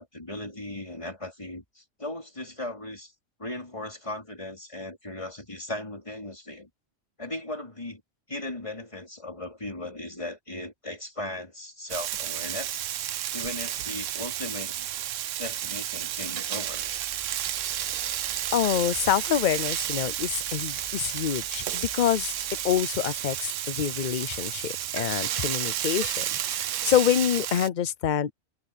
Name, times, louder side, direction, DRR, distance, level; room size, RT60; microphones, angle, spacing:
voice 1, 0.0-3.1 3.4-6.7 7.2-8.0 8.3-12.9 13.3-14.9 15.4-16.9, left 1 dB, 25° left, 4.3 m, -37 dB
Frying (food), 11.9-27.7, right 11 dB, 70° right, 1.0 m, -31 dB
Tools, 16.7-22.8, equal, 5° right, 5.5 m, -49 dB
voice 2, 18.5-28.3, left 10 dB, 50° left, 0.6 m, -27 dB
omnidirectional pair, 1.4 m